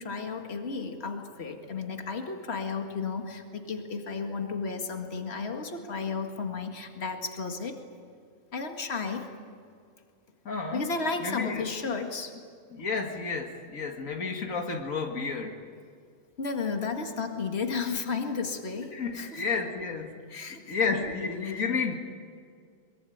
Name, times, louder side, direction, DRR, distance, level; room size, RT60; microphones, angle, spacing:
voice 1, 0.0-7.8 8.5-9.3 10.7-12.3 16.4-19.4 20.3-20.7 21.4-21.6, left 4 dB, 50° left, 4 dB, 2.2 m, -33 dB
voice 2, 10.5-10.8 11.2-11.7 12.7-15.6 18.9-20.1 20.7-22.0, left 4 dB, 90° left, 3 dB, 2.3 m, -31 dB
23.5 x 22.5 x 9.3 m, 2.1 s
omnidirectional pair, 1.4 m